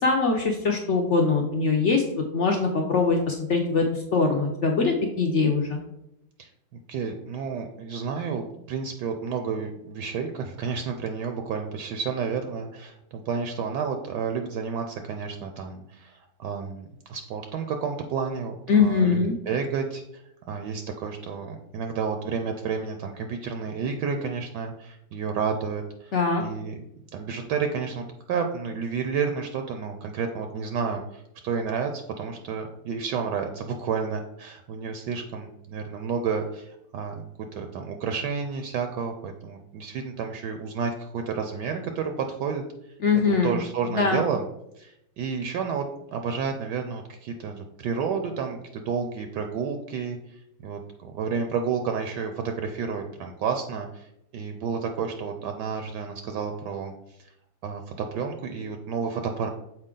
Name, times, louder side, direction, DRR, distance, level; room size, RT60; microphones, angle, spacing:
voice 1, 0.0-5.8 18.7-19.3 26.1-26.4 43.0-43.6 43.9-44.2, left 4 dB, 70° left, 2 dB, 0.6 m, -22 dB
voice 2, 6.9-20.2 20.5-26.1 26.4-26.8 27.1-42.6 43.2-44.4 44.8-56.9 57.6-59.5, right 6 dB, 75° right, 5 dB, 1.1 m, -31 dB
6.5 x 4.6 x 3.7 m, 0.83 s
omnidirectional pair, 2.0 m